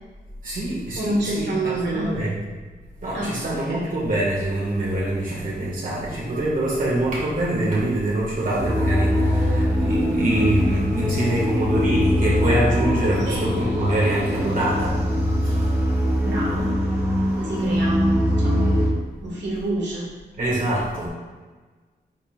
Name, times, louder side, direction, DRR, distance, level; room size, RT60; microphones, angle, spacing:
voice 1, 0.4-2.4 3.0-15.0 15.4-15.7 20.4-21.1, right 1 dB, 50° right, -5 dB, 2.0 m, -24 dB
voice 2, 1.0-2.1 3.1-3.9 10.1-10.5 13.2-13.5 16.2-16.8 17.3-20.1, right 1 dB, 85° right, -4 dB, 2.0 m, -28 dB
sound 1, 8.6-18.9, equal, 15° right, 1.3 m, -22 dB
9.8 x 4.3 x 2.6 m, 1.4 s
wide cardioid pair, 150°, 18 cm